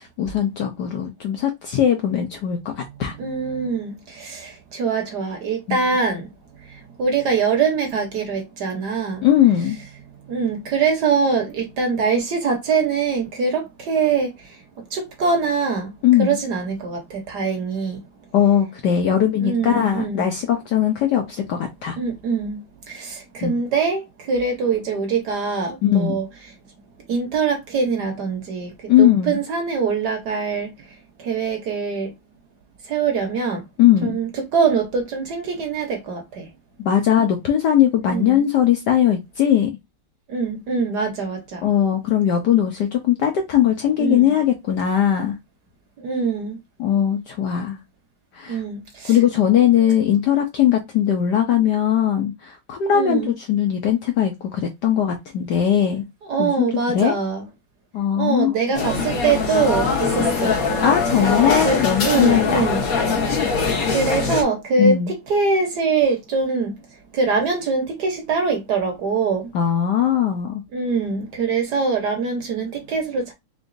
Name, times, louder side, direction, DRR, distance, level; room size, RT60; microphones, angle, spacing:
voice 1, 0.0-2.7 3.0-3.1 5.7-5.8 9.2-9.8 16.0-16.4 18.3-22.0 23.4-23.6 25.8-26.2 28.9-29.4 33.8-34.2 36.8-39.7 41.6-45.4 46.8-47.8 48.3-48.6 49.1-56.0 56.4-57.1 57.9-58.5 60.8-62.7 64.8-65.1 69.5-70.6, left 10 dB, 70° left, 1.1 m, -19 dB
voice 2, 3.2-6.3 7.0-9.2 10.3-14.3 14.9-15.9 16.2-18.0 19.4-20.3 22.0-22.6 22.9-26.3 27.1-28.7 29.0-30.7 31.2-32.1 32.9-33.6 34.0-36.4 38.0-38.4 40.3-41.6 44.0-44.4 46.0-46.6 48.5-49.2 52.9-53.3 56.3-57.4 58.2-60.5 61.6-62.8 63.5-66.8 67.1-69.5 70.7-73.3, right 5 dB, 55° right, 1.3 m, -23 dB
sound 1, 58.7-64.4, left 4 dB, 50° left, 1.2 m, -22 dB
3.8 x 3.7 x 2.6 m
omnidirectional pair, 2.4 m